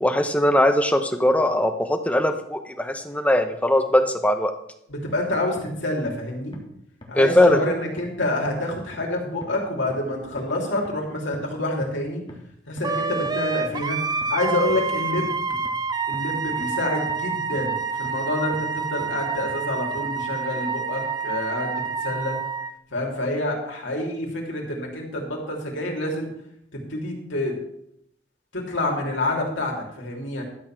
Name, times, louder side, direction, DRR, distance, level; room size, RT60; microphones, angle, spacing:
voice 1, 0.0-4.5 7.1-7.6, left 1 dB, 5° left, 6 dB, 0.9 m, -20 dB
voice 2, 4.9-6.6 7.1-12.2 12.7-14.0 14.3-15.3 16.1-22.4 22.9-26.3 26.7-27.6 28.5-30.4, left 1 dB, 75° left, 0 dB, 3.2 m, -27 dB
sound 1, 5.1-5.2 5.6-5.7 6.1-6.2 6.5-6.6 7.0-7.1 7.5-7.6 8.0-8.1 8.5-8.6 8.9-9.0 9.4-9.5 9.9-10.0 10.4-10.5 10.9-11.0 11.3-11.4 11.8-11.9 12.3-12.4 12.8-12.9 13.3-13.4 13.7-13.8 14.2-14.3 14.7-14.8 15.2-15.3 15.7-15.8 16.1-16.2 16.6-16.7 17.1-17.2 17.6-17.7 18.1-18.2 18.5-18.6 19.0-19.1 19.5-19.6 20.0-20.1, left 1 dB, 25° left, 1.9 m, -42 dB
Wind instrument woodwind instrument, 12.8-22.7, right 4 dB, 20° right, 0.6 m, -28 dB
12.5 x 7.2 x 6.0 m, 0.74 s
head